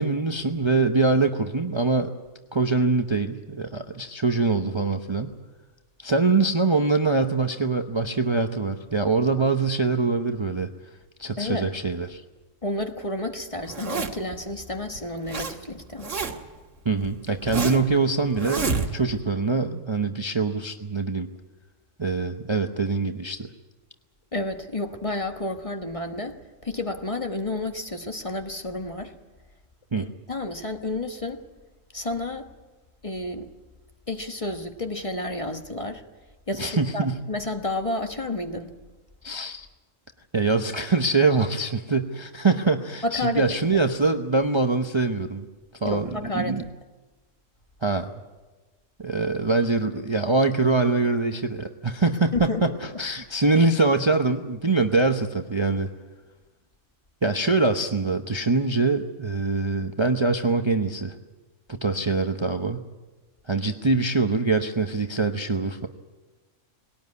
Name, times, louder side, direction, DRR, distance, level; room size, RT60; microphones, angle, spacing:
voice 1, 0.0-2.1 2.5-5.3 6.0-10.7 11.2-12.2 16.8-21.3 22.0-23.5 29.9-30.1 36.6-37.2 39.2-39.7 40.3-45.4 45.8-46.6 47.8-48.1 49.0-55.9 57.2-61.1 61.7-62.8 63.5-65.9, right 3 dB, 25° right, 6 dB, 0.8 m, -24 dB
voice 2, 11.4-11.7 12.6-16.1 24.3-29.1 30.0-31.4 31.9-32.5 33.0-33.5 34.1-36.0 36.5-38.7 43.0-43.8 45.8-46.7 52.3-52.7, left 2 dB, 25° left, 6 dB, 1.3 m, -31 dB
Zipper (clothing), 13.6-14.3 14.9-15.5 15.8-16.6 17.0-17.9 18.4-19.2, right 4 dB, 70° right, 1.9 m, -29 dB
21.0 x 18.0 x 9.6 m, 1.2 s
omnidirectional pair, 1.3 m